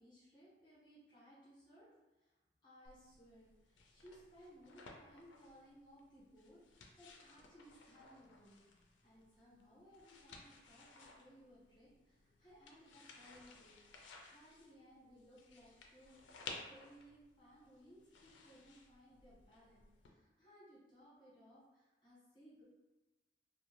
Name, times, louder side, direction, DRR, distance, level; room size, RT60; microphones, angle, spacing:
voice 1, 0.0-2.4 2.6-16.2 16.6-22.6, equal, 25° left, -9 dB, 1.3 m, -62 dB
sound 1, 2.9-20.1, left 4 dB, 90° left, 0.4 m, -58 dB
2.6 x 2.2 x 3.0 m, 1.1 s
head